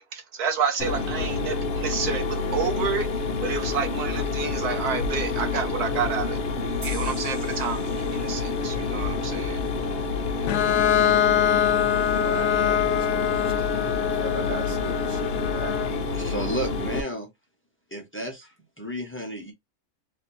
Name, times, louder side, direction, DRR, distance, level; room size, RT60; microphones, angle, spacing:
voice 1, 0.0-3.1 3.4-6.4 6.8-9.6, right 6 dB, 75° right, 1.5 m, -29 dB
Mechanisms, 0.8-17.0, left 4 dB, 45° left, 0.9 m, -28 dB
sound 1, 6.8-10.2, right 1 dB, 20° right, 1.4 m, -46 dB
Bowed string instrument, 10.5-16.1, left 10 dB, 80° left, 1.1 m, -24 dB
voice 2, 12.1-13.3 13.6-13.7 14.2-15.8, right 2 dB, 55° right, 1.5 m, -38 dB
voice 3, 16.1-17.3 17.9-19.5, right 1 dB, 10° left, 0.9 m, -32 dB
3.6 x 2.8 x 4.3 m
omnidirectional pair, 1.7 m